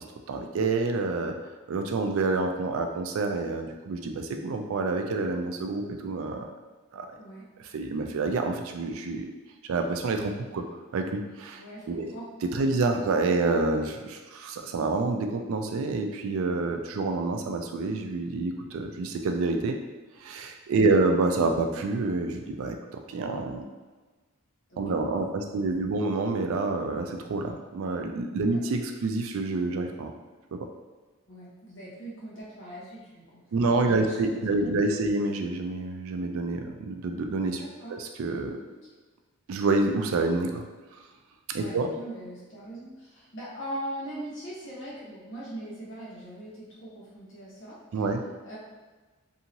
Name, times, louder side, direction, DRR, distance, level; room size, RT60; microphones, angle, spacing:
voice 1, 0.3-1.3 1.7-6.5 6.9-7.1 7.7-9.3 9.6-10.7 10.9-11.6 11.9-12.2 12.4-19.8 20.2-23.7 24.8-30.1 30.5-30.7 33.5-37.6 37.9-38.6 39.5-40.7 41.5-41.9 47.9-48.2, right 3 dB, 70° right, 5 dB, 0.3 m, -28 dB
voice 2, 11.6-12.3 12.7-12.8 20.7-21.0 24.7-25.9 28.5-28.6 31.3-35.1 37.6-38.0 38.7-38.8 41.5-48.1 48.4-48.6, right 1 dB, 55° left, -6 dB, 1.0 m, -41 dB
2.8 x 2.7 x 2.6 m, 1.3 s
head